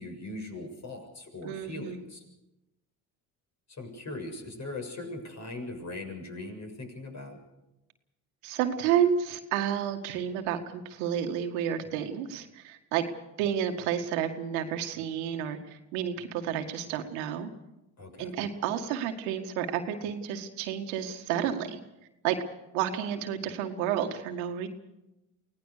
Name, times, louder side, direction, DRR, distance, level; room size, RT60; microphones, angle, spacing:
voice 1, 0.0-2.2 3.7-7.4 18.0-18.3, left 2 dB, 40° left, 3 dB, 7.2 m, -40 dB
voice 2, 1.4-2.0 8.4-13.0 13.4-17.5 18.2-21.8 22.2-22.4 22.7-24.7, right 9 dB, 90° right, 6 dB, 1.9 m, -30 dB
24.5 x 17.5 x 6.7 m, 0.92 s
supercardioid pair, 70°, 41 cm